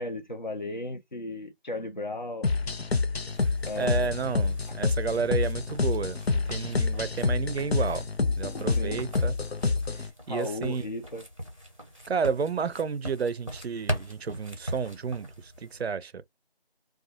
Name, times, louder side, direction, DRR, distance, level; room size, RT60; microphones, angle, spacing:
voice 1, 0.0-2.5 3.6-4.1 8.7-9.0 10.3-11.3, left 2 dB, 50° left, 0.6 m, -35 dB
sound 1, 2.4-10.1, left 4 dB, 90° left, 0.6 m, -28 dB
sound 2, 3.3-15.8, equal, 35° right, 0.6 m, -41 dB
voice 2, 3.8-8.0 8.4-9.4 10.3-10.8 12.1-16.1, right 5 dB, 90° right, 0.5 m, -31 dB
2.5 x 2.2 x 2.7 m
figure-of-eight pair, 175°, 31 cm